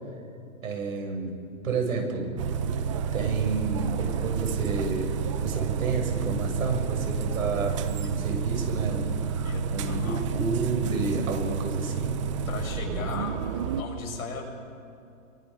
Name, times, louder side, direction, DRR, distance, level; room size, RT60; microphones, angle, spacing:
voice 1, 0.6-1.4 1.6-2.3 3.1-12.2, right 4 dB, 75° right, 2 dB, 7.2 m, -30 dB
sound 1, 2.4-13.8, right 7 dB, 25° right, 0.7 m, -30 dB
voice 2, 9.4-10.2 12.5-14.4, left 4 dB, 80° left, 0 dB, 7.2 m, -36 dB
29.5 x 23.5 x 5.3 m, 2.6 s
hypercardioid pair, 160°, 42 cm